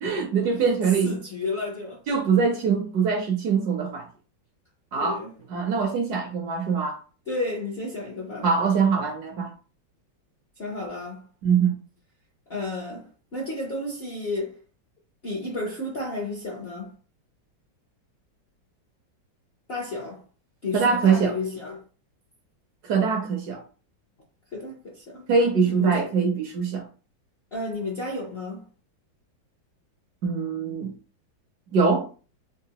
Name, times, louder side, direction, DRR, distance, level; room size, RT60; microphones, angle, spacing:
voice 1, 0.0-1.2 2.1-4.1 4.9-5.2 5.5-7.0 8.4-9.5 11.4-11.8 20.7-21.3 22.8-23.6 25.3-26.9 30.2-30.9 31.7-32.1, right 5 dB, 70° right, 1.0 m, -23 dB
voice 2, 1.0-2.0 5.0-5.3 7.3-8.5 10.6-11.3 12.5-14.6 15.2-16.9 19.7-20.2 20.6-21.8 24.5-25.2 25.7-26.1 27.5-28.7, left 2 dB, 55° left, 0.7 m, -32 dB
3.8 x 2.6 x 2.8 m
omnidirectional pair, 2.1 m